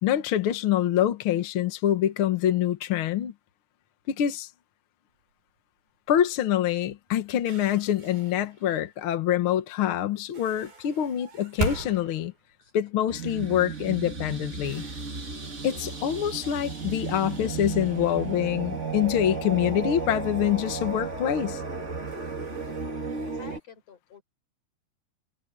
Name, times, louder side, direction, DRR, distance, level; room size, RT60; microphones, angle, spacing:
voice 1, 0.0-3.3 4.1-4.5 6.1-12.3 12.7-14.8 15.6-21.6, left 11 dB, 75° left, 1.2 m, -25 dB
sound 1, 5.1-5.5 6.1-6.3 6.6-9.1 10.1-13.5 13.9-14.0 14.4-19.9 20.2-20.3 21.2-21.4 21.8-23.6, right 3 dB, 75° right, 8.8 m, -41 dB
sound 2, 13.1-23.6, right 4 dB, 25° right, 2.2 m, -34 dB
voice 2, 23.3-24.2, left 4 dB, 40° left, 5.9 m, -50 dB
omnidirectional pair, 4.3 m